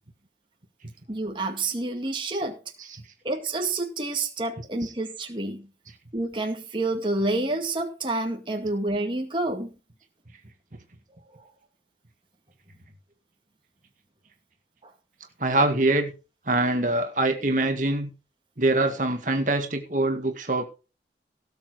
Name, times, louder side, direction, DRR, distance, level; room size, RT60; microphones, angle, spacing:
voice 1, 1.1-2.6 3.2-5.7 6.1-9.7 14.8-14.9, right 2 dB, 25° right, 2 dB, 2.1 m, -28 dB
voice 2, 15.4-16.1 16.5-18.1 18.6-20.7, right 2 dB, 45° right, 4 dB, 2.0 m, -24 dB
18.0 x 7.1 x 4.9 m, 0.33 s
head